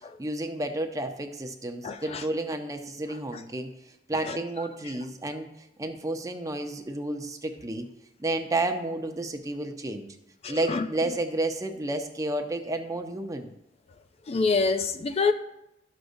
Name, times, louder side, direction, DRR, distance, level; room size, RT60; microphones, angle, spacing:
voice 1, 0.2-3.7 4.1-5.5 5.8-7.9 8.2-10.2 10.5-13.5, right 2 dB, 20° right, 0.7 m, -31 dB
voice 2, 1.8-2.2 4.3-4.4 10.4-10.9 14.3-15.3, left 4 dB, 35° left, 0.4 m, -26 dB
12.5 x 6.4 x 2.6 m
head